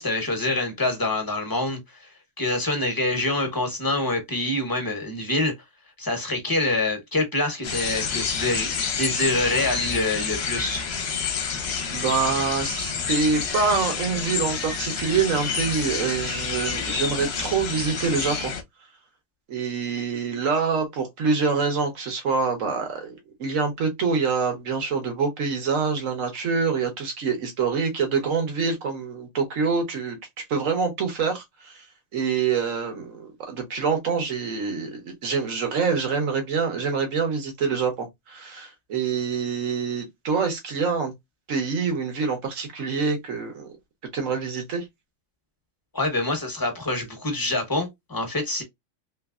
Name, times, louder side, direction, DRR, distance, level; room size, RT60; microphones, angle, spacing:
voice 1, 0.0-2.1 2.4-5.5 6.0-8.7 9.0-10.8 45.9-48.6, left 2 dB, 20° left, 0.8 m, -26 dB
sound 1, 7.6-18.6, left 6 dB, 60° left, 0.9 m, -29 dB
voice 2, 11.9-18.5 19.5-30.2 30.5-31.8 32.1-41.1 41.5-43.7 44.1-44.8, right 5 dB, 85° right, 1.4 m, -26 dB
3.2 x 3.1 x 2.3 m
omnidirectional pair, 1.3 m